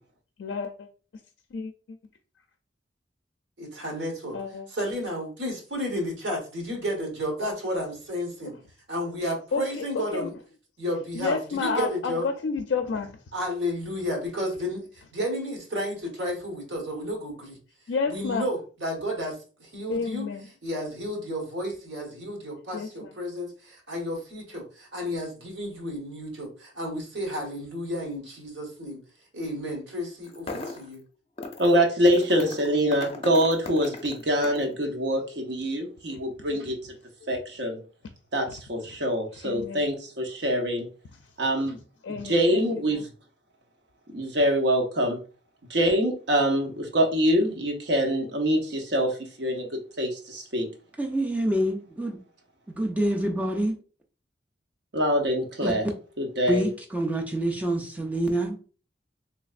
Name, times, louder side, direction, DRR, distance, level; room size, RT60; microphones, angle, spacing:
voice 1, 0.4-0.9 1.5-2.0 4.3-4.7 9.5-10.3 11.1-13.2 17.9-18.5 19.9-20.5 22.7-23.1 25.0-25.1 34.7-34.8 36.1-36.5 37.2-37.4 39.4-39.8 42.0-43.0, left 5 dB, 85° left, 0.4 m, -31 dB
voice 2, 3.6-4.4 4.7-8.6 8.9-10.3 10.8-12.3 13.3-17.6 18.1-20.3 20.6-29.0 29.3-31.0, equal, 85° right, 1.2 m, -32 dB
sound 1, 30.2-30.9 31.4-31.7 32.1-34.7, left 3 dB, 35° left, 0.5 m, -37 dB
voice 3, 31.6-36.8 37.3-37.8 38.3-40.9 41.4-41.8 42.2-43.0 44.1-45.2 45.7-49.7 50.0-50.7 54.9-55.8 56.2-56.7, equal, 65° right, 0.8 m, -24 dB
voice 4, 51.0-52.2 52.8-53.8 55.6-55.7 56.5-58.6, right 1 dB, 10° right, 0.5 m, -26 dB
3.2 x 3.1 x 2.4 m
head